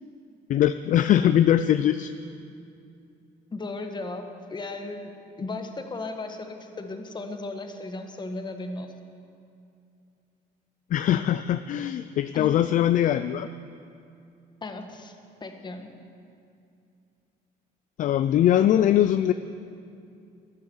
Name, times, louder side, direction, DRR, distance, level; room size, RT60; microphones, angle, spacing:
voice 1, 0.5-2.1 10.9-13.5 18.0-19.3, left 11 dB, 50° left, 12 dB, 0.4 m, -21 dB
voice 2, 3.5-5.1 5.4-8.9 12.3-12.5 14.6-15.1 15.4-15.9, left 2 dB, 25° left, 5 dB, 1.4 m, -36 dB
12.5 x 10.5 x 8.1 m, 2.5 s
cardioid pair, 110°, 17 cm